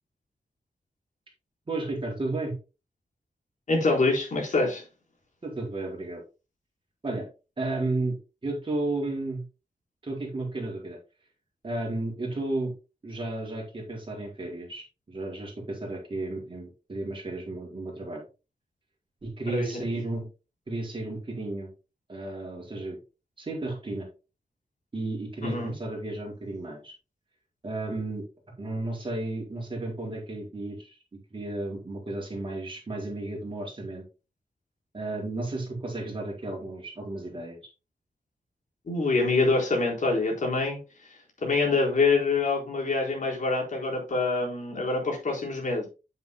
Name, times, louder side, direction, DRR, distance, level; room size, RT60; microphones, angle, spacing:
voice 1, 1.7-2.5 5.4-6.2 7.0-7.3 7.6-8.2 8.4-9.4 10.0-11.0 11.6-12.7 13.0-18.2 19.2-20.3 20.7-21.7 22.1-23.0 23.4-24.1 24.9-26.9 27.6-28.2 28.6-30.9 31.3-34.0 34.9-37.6, right 2 dB, 35° right, -1 dB, 4.4 m, -33 dB
voice 2, 3.7-4.8 19.5-19.8 25.4-25.7 38.9-40.8 41.0-45.9, left 3 dB, 60° left, 0 dB, 4.1 m, -25 dB
9.1 x 9.0 x 2.2 m, 0.29 s
wide cardioid pair, 135°, 14 cm